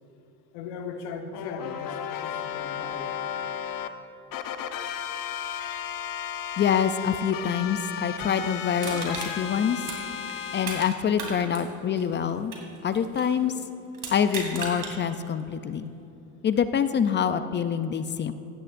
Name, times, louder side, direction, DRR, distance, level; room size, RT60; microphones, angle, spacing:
voice 1, 0.5-3.2, left 5 dB, 80° left, 4 dB, 1.3 m, -38 dB
sound 1, 1.3-3.9 4.3-10.9, left 9 dB, 45° left, 0.8 m, -34 dB
voice 2, 6.6-9.8 10.5-12.6 12.8-13.5 14.1-15.9 16.4-18.3, left 8 dB, 25° left, 11 dB, 0.3 m, -26 dB
Crushing, 8.8-10.9 11.2-13.4 13.9-14.9 15.4-15.5, right 4 dB, 45° right, 2.7 m, -36 dB
16.5 x 11.5 x 2.6 m, 2.8 s
supercardioid pair, 95°, 47 cm